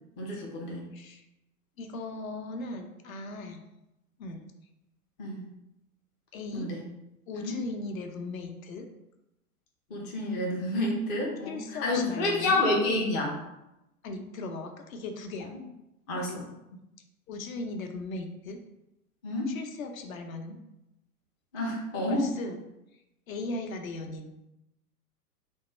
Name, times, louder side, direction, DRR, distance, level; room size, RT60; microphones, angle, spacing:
voice 1, 0.2-0.9 5.2-5.5 6.5-6.8 7.4-7.6 9.9-13.3 16.1-16.4 19.2-19.5 21.5-22.2, left 2 dB, 15° left, -1 dB, 0.3 m, -29 dB
voice 2, 0.9-1.2 1.8-3.6 4.2-4.4 6.3-6.7 7.3-8.9 11.5-12.6 14.0-15.5 16.1-16.4 16.7-16.8 17.3-18.6 19.5-20.6 22.1-22.6 23.3-24.3, left 2 dB, 60° left, 5 dB, 0.7 m, -38 dB
3.4 x 2.2 x 4.2 m, 0.90 s
figure-of-eight pair, 105°, 45 cm